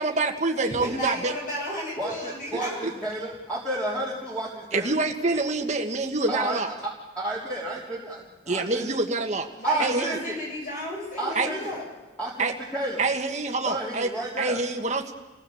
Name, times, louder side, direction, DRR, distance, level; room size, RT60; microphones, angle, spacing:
voice 1, 0.0-1.3 2.8-2.9 4.7-6.7 8.5-9.5 9.8-10.2 11.4-11.5 12.4-12.5 13.0-14.1 14.4-15.1, right 3 dB, 40° right, 3 dB, 1.7 m, -26 dB
voice 2, 0.6-3.0 9.6-11.8, left 1 dB, 45° left, -2 dB, 7.6 m, -33 dB
voice 3, 2.0-4.9 6.3-8.8 9.6-10.4 11.2-11.8 12.2-13.1 13.7-14.6, right 1 dB, 10° left, -7 dB, 3.6 m, -31 dB
27.5 x 17.0 x 7.3 m, 1.2 s
head